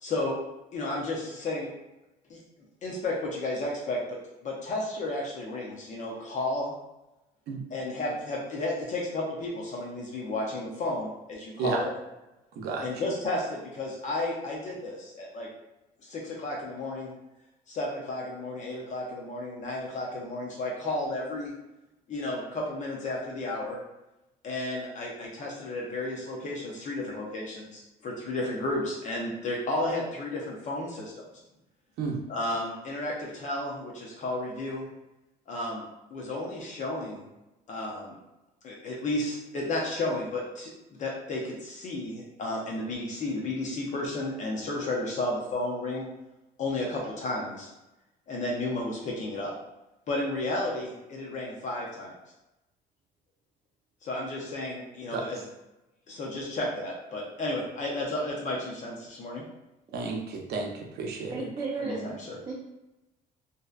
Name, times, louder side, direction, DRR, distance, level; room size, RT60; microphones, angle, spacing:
voice 1, 0.0-0.4 0.7-1.7 2.3-2.4 2.8-4.2 4.4-6.7 7.7-11.9 12.8-15.5 16.0-17.1 17.7-21.5 22.1-23.8 24.4-31.3 32.3-34.9 35.5-35.8 36.1-37.3 37.7-38.2 38.6-40.7 41.0-46.1 46.6-47.7 48.3-49.5 50.1-52.1 54.0-55.5 56.1-59.4 61.8-62.4, left 2 dB, 45° left, -3 dB, 0.6 m, -32 dB
voice 2, 12.6-12.9 32.0-32.2 55.1-55.3 59.9-61.5, right 4 dB, 70° right, 1 dB, 0.6 m, -32 dB
voice 3, 61.3-62.1 62.5-62.6, right 4 dB, 25° right, -6 dB, 0.5 m, -33 dB
2.6 x 2.1 x 2.4 m, 0.95 s
cardioid pair, 110°, 17 cm